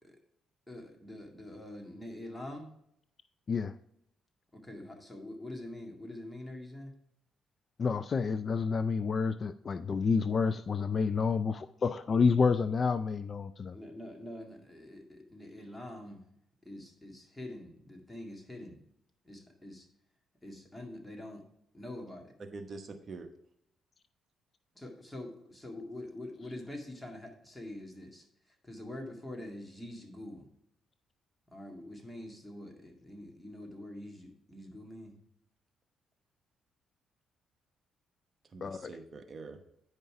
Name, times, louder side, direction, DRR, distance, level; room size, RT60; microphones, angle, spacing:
voice 1, 0.7-2.7 4.5-7.0 13.7-16.3 16.6-18.8 19.2-19.9 20.4-21.4 21.7-22.3 24.7-30.5 31.5-35.2, left 1 dB, 10° left, 2 dB, 2.1 m, -45 dB
voice 2, 7.8-13.7 38.6-38.9, left 5 dB, 40° left, 12 dB, 0.4 m, -29 dB
voice 3, 22.4-23.3 38.4-39.6, right 3 dB, 45° right, 8 dB, 1.0 m, -45 dB
9.4 x 5.4 x 4.8 m, 0.75 s
cardioid pair, 90°, 0 cm